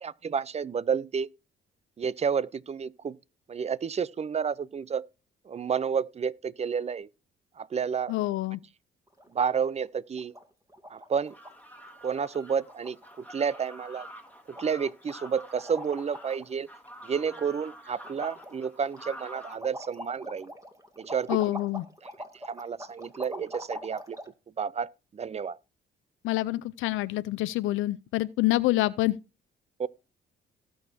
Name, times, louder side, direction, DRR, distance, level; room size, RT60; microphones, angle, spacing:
voice 1, 0.0-1.3 2.0-3.2 3.5-5.0 5.5-7.1 7.6-8.2 9.3-10.3 10.9-11.3 12.0-13.0 13.3-14.1 14.5-16.7 17.0-20.5 21.0-21.4 22.5-24.2 24.6-25.6 29.8-29.9, right 6 dB, 35° right, 0.5 m, -30 dB
voice 2, 8.1-8.6 21.3-21.8 26.2-29.2, left 17 dB, 90° left, 0.5 m, -27 dB
sound 1, 9.1-9.5 9.8-9.9 10.1-10.4 10.7-11.5 11.8-12.0 12.3-12.4 12.7-13.2 13.5-13.7 14.0-14.3 14.6-16.5 16.9-17.7 18.0-24.3, equal, 15° right, 2.3 m, -43 dB
sound 2, 11.2-19.6, equal, 10° left, 1.9 m, -48 dB
18.5 x 6.4 x 2.7 m
cardioid pair, 90°, 20 cm